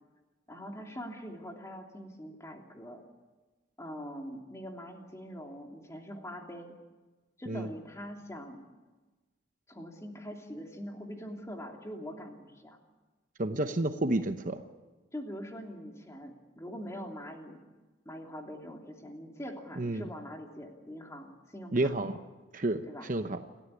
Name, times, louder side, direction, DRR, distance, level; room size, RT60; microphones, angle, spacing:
voice 1, 0.5-3.0 3.8-6.8 7.4-8.7 9.7-12.8 15.1-17.6 18.0-21.9 22.9-23.1, equal, 15° left, 2 dB, 3.0 m, -43 dB
voice 2, 13.4-14.6 19.8-20.1 21.7-22.2 22.5-23.4, right 2 dB, 45° right, 8 dB, 0.9 m, -30 dB
29.0 x 13.5 x 9.8 m, 1.2 s
head